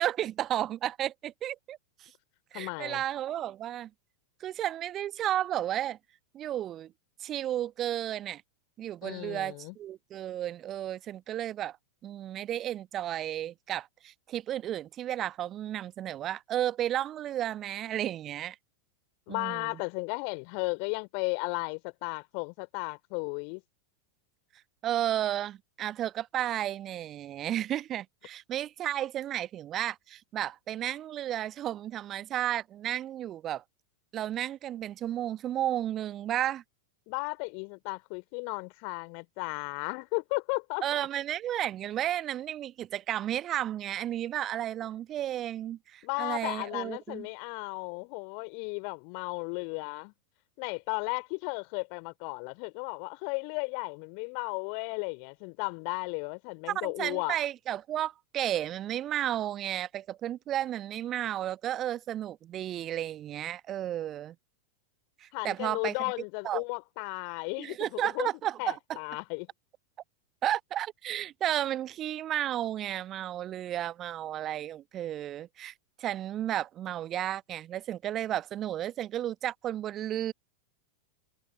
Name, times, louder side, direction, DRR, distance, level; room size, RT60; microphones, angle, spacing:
voice 1, 0.0-2.1 2.5-3.9 4.4-6.0 6.3-6.9 7.2-8.4 8.8-11.8 12.0-18.6 19.3-19.7 24.8-33.6 34.1-36.6 40.8-47.3 56.7-64.3 65.2-65.9 66.4-66.6 67.6-69.0 70.4-80.3, right 12 dB, 30° right, 1.1 m, -33 dB
voice 2, 2.5-3.0 9.0-9.8 19.3-23.6 37.1-40.8 46.0-50.1 50.6-57.4 65.3-68.3 68.6-69.5, left 40 dB or more, 45° left, 2.8 m, -35 dB
figure-of-eight pair, 90°, 0 cm